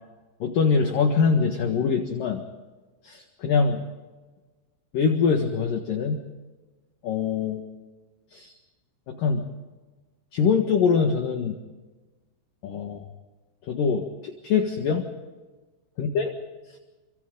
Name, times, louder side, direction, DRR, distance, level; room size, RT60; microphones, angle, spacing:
voice 1, 0.4-2.4 3.0-3.8 4.9-6.2 7.0-7.6 8.3-8.6 9.1-9.5 10.3-11.6 12.6-13.1 13.6-15.1 16.0-16.3, left 5 dB, 60° left, 4 dB, 2.7 m, -23 dB
30.0 x 25.0 x 3.9 m, 1.3 s
omnidirectional pair, 5.4 m